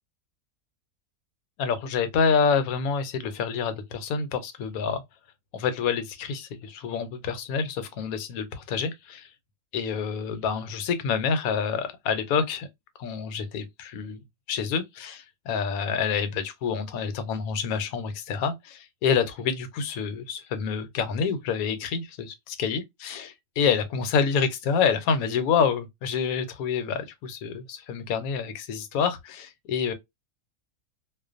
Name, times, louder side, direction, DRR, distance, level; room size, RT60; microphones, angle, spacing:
voice 1, 1.6-5.0 5.5-9.3 9.7-12.7 13.0-29.9, left 6 dB, 75° left, 1.0 m, -27 dB
2.4 x 2.2 x 2.4 m
omnidirectional pair, 1.5 m